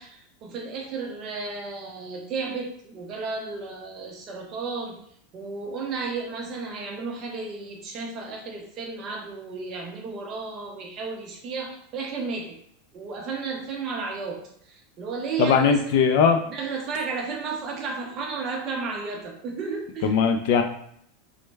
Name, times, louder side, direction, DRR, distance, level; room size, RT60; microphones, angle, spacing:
voice 1, 0.0-5.0 5.3-12.5 12.9-14.4 15.0-15.8 16.5-20.2, right 4 dB, 25° right, 1 dB, 0.5 m, -33 dB
voice 2, 15.4-16.4 20.0-20.6, left 6 dB, 50° left, 6 dB, 0.3 m, -19 dB
3.2 x 2.1 x 3.3 m, 0.67 s
supercardioid pair, 180°, 0 cm